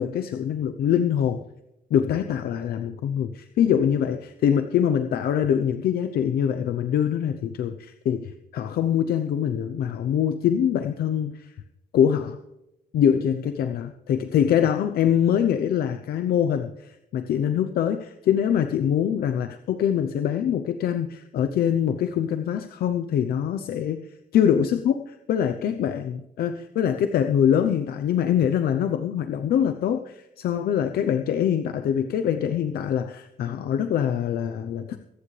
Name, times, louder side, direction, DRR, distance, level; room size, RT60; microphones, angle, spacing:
voice 1, 0.0-1.4 1.9-11.5 11.9-12.4 12.9-24.1 24.3-34.9, left 9 dB, 85° left, 8 dB, 0.7 m, -24 dB
23.5 x 10.0 x 3.3 m, 0.90 s
cardioid pair, 135°, 16 cm